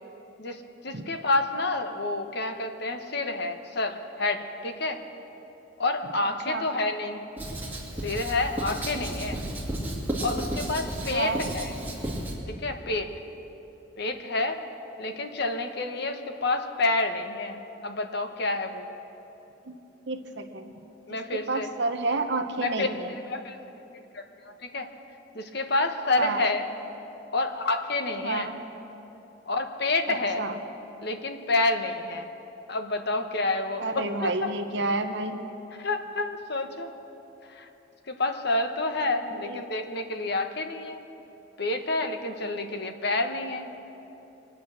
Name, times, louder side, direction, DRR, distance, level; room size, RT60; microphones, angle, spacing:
voice 1, 0.4-5.0 5.8-7.2 8.0-9.4 10.2-11.7 12.5-13.1 14.0-14.6 15.0-18.8 21.1-21.7 22.6-22.9 23.3-23.6 24.1-24.9 25.3-26.6 27.3-28.5 29.5-30.5 31.0-32.3 32.7-34.5 35.7-36.9 37.5-37.7 38.1-41.0 41.6-43.7, left 2 dB, 55° left, 6 dB, 1.1 m, -29 dB
Writing, 7.4-12.4, right 1 dB, 10° right, 2.5 m, -33 dB
voice 2, 11.0-11.5 19.6-19.7 20.1-20.7 21.1-23.1 26.1-26.5 28.2-28.6 30.4-30.6 33.8-35.4 39.3-39.6, right 3 dB, 60° right, 6 dB, 1.1 m, -30 dB
24.0 x 9.2 x 6.3 m, 3.0 s
head